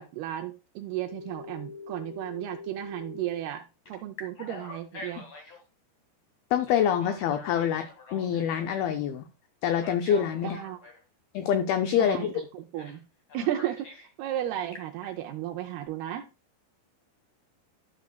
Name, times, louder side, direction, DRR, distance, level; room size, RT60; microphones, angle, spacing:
voice 1, 0.0-5.3 10.4-10.8 12.0-13.1 13.3-16.3, right 12 dB, 85° right, 2.3 m, -34 dB
Telephone, 1.1-3.3 3.8-5.6 6.6-8.8 9.7-11.0 12.7-13.0 13.3-14.1 14.5-15.1, left 3 dB, 40° left, 1.8 m, -44 dB
voice 2, 6.5-9.2 9.6-10.6 11.3-12.4, left 8 dB, 90° left, 2.1 m, -26 dB
13.0 x 6.2 x 2.2 m
omnidirectional pair, 5.0 m